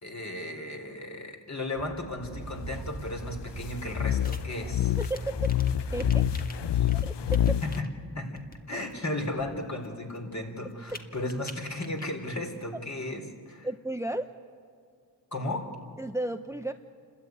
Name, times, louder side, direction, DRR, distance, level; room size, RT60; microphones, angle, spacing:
voice 1, 0.0-4.9 6.7-6.9 7.6-7.9 8.1-8.4 8.7-13.7 15.3-15.7, left 1 dB, 40° left, 3 dB, 4.0 m, -35 dB
Speech / Wind, 1.8-6.7, right 3 dB, 50° right, 2.1 m, -41 dB
sound 1, 3.9-7.8, left 11 dB, 70° left, 0.7 m, -27 dB
sound 2, 4.2-4.4 5.0-7.9 8.4-8.6 8.9-10.2 10.7-12.0 12.3-12.5, left 1 dB, 20° left, 2.0 m, -47 dB
voice 2, 4.9-5.5 5.9-6.3 6.9-7.1 13.6-14.3 16.0-16.7, right 1 dB, 5° right, 8 dB, 0.9 m, -33 dB
29.0 x 13.0 x 9.4 m, 2.1 s
cardioid pair, 45°, 44 cm